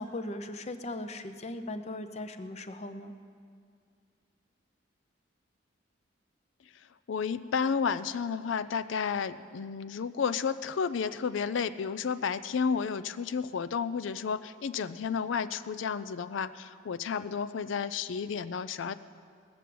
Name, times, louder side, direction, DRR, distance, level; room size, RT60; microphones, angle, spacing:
voice 1, 0.0-3.1, left 1 dB, 35° left, 8 dB, 0.7 m, -38 dB
voice 2, 7.1-18.9, left 6 dB, 80° left, 13 dB, 0.4 m, -32 dB
19.5 x 6.8 x 7.7 m, 2.2 s
head